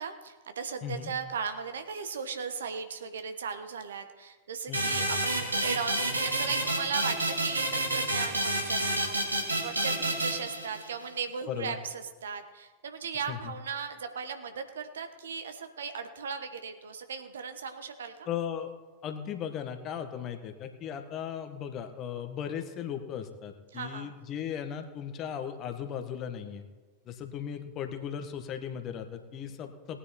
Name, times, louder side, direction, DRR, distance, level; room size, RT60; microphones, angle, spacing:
voice 1, 0.0-18.3 23.7-24.1, right 6 dB, 65° right, 8 dB, 1.2 m, -37 dB
voice 2, 0.8-1.1 4.7-4.8 11.5-11.8 13.3-13.5 18.3-18.7 19.0-26.6 27.0-30.0, left 8 dB, 35° left, 7 dB, 1.5 m, -37 dB
sound 1, 4.7-11.1, right 1 dB, 80° right, 2.0 m, -29 dB
18.5 x 9.4 x 4.4 m, 1.3 s
figure-of-eight pair, 90°, 0 cm